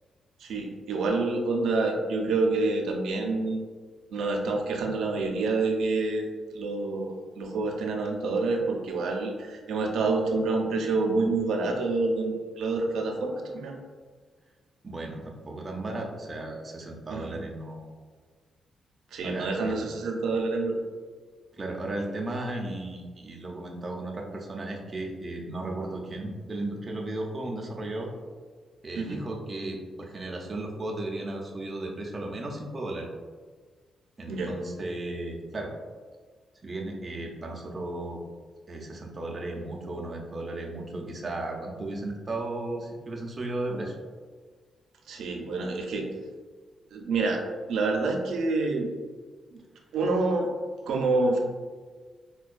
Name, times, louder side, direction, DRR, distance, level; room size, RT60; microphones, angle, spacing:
voice 1, 0.4-3.6 4.1-13.7 17.1-17.4 19.1-20.8 28.9-29.2 34.3-34.5 45.1-46.1 46.9-47.4 47.7-48.9 49.9-50.5 50.9-51.4, right 3 dB, 80° right, 2 dB, 0.5 m, -27 dB
voice 2, 14.8-17.9 19.2-19.9 21.5-28.1 28.8-33.1 34.2-35.7 36.6-38.2 38.7-44.0, right 2 dB, 25° right, -1 dB, 0.5 m, -35 dB
4.4 x 2.2 x 2.4 m, 1.5 s
cardioid pair, 115°, 0 cm